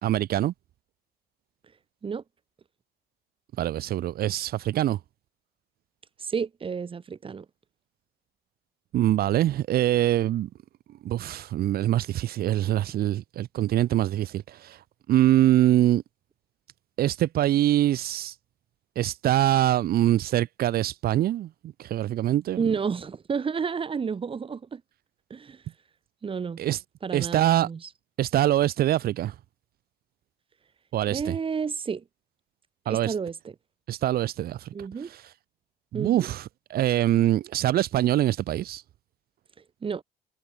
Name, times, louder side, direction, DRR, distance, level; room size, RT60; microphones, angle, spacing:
voice 1, 0.0-0.5 3.6-5.0 8.9-10.5 11.0-14.8 15.1-16.0 17.0-18.4 19.0-21.5 21.8-22.6 26.6-26.8 27.1-27.7 28.2-29.3 30.9-31.4 32.9-33.1 33.9-35.2 35.9-38.8, right 13 dB, 65° right, 1.8 m, -24 dB
voice 2, 6.2-7.4 22.6-24.8 25.3-25.6 26.2-26.6 27.0-27.8 31.1-32.0 32.9-33.4 34.7-35.1 35.9-36.3 39.8-40.0, right 6 dB, 30° right, 2.8 m, -30 dB
cardioid pair, 110°, 17 cm